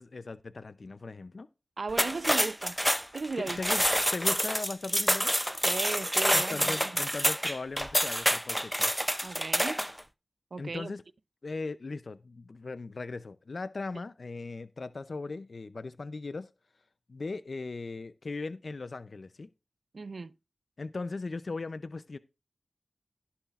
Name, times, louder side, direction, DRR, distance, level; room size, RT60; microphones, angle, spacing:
voice 1, 0.0-1.5 3.4-3.8 4.1-5.3 6.3-8.9 10.6-11.0 11.4-16.5 17.1-19.5 20.8-22.2, left 3 dB, 65° left, 0.5 m, -38 dB
voice 2, 1.8-2.8 3.1-3.6 5.6-6.9 9.2-9.9 10.5-10.9 19.9-20.3, right 4 dB, 75° right, 0.4 m, -36 dB
sound 1, 1.9-10.0, equal, ahead, 0.5 m, -27 dB
17.0 x 7.0 x 2.4 m
wide cardioid pair, 70°, 0 cm